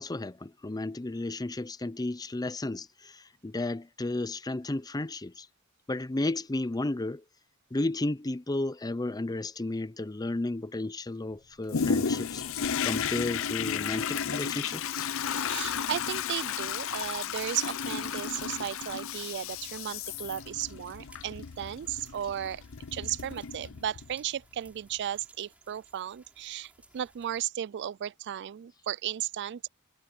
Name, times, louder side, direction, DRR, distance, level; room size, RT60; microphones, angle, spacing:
voice 1, 0.0-5.5 5.9-7.2 7.7-12.4 12.8-15.1, left 2 dB, 20° left, 0.6 m, -33 dB
Toilet flush, 11.7-24.1 24.7-24.8, left 7 dB, 65° left, 0.6 m, -33 dB
voice 2, 15.4-22.6 22.9-29.7, right 10 dB, 55° right, 0.3 m, -35 dB
sound 1, 16.6-27.5, right 1 dB, 5° right, 7.5 m, -61 dB
head